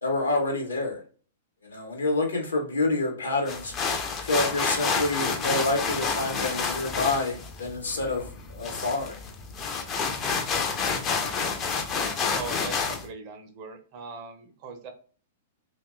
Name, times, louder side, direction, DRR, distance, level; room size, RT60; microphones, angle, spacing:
voice 1, 0.0-1.0 1.6-3.7 4.2-9.2, left 2 dB, 75° left, 1 dB, 0.8 m, -28 dB
sound 1, 3.5-13.0, left 5 dB, 25° left, 0.4 m, -29 dB
voice 2, 11.9-14.9, right 4 dB, 40° right, 5 dB, 0.5 m, -40 dB
2.8 x 2.1 x 2.2 m, 0.42 s
figure-of-eight pair, 105°, 0 cm